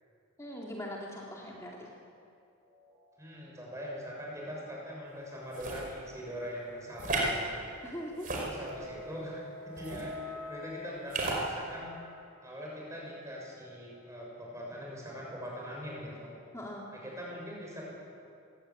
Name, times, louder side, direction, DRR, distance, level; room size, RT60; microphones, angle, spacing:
voice 1, 0.4-1.9 7.8-8.3 16.5-16.8, equal, 15° left, -3 dB, 2.5 m, -41 dB
sound 1, 2.6-13.9, left 1 dB, 60° right, 6.5 m, -49 dB
voice 2, 3.2-7.7 8.3-11.9 12.4-16.3 16.9-17.9, equal, 15° right, -3 dB, 6.6 m, -42 dB
sound 2, 5.5-5.9 7.0-7.3 8.1-8.9 9.8-10.0 11.1-11.4, right 2 dB, 40° right, 4.9 m, -33 dB
21.5 x 17.0 x 8.9 m, 2.5 s
head